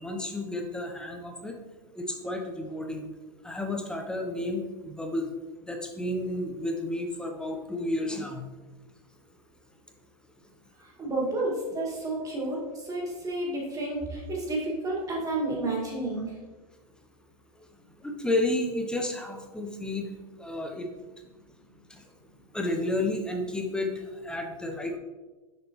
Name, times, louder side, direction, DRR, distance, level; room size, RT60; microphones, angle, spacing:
voice 1, 0.0-1.6 2.0-3.1 3.4-5.3 5.7-8.5 18.0-20.1 20.4-20.9 22.5-25.0, left 1 dB, 5° left, 3 dB, 0.7 m, -31 dB
voice 2, 10.8-16.3, right 2 dB, 15° right, -3 dB, 1.9 m, -31 dB
6.6 x 5.1 x 3.0 m, 1.2 s
hypercardioid pair, 120°, 20 cm